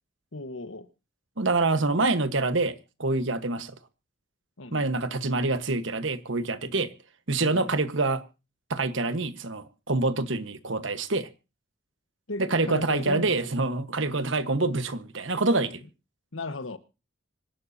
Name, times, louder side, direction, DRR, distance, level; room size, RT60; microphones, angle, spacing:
voice 1, 0.3-0.9 4.6-4.9 7.4-7.7 12.3-13.3 16.3-16.8, left 2 dB, 80° left, 1.4 m, -36 dB
voice 2, 1.4-2.7 3.0-3.7 4.7-6.9 7.3-8.2 8.7-11.3 12.4-15.8, right 3 dB, 70° right, 1.3 m, -26 dB
26.0 x 11.5 x 2.8 m
head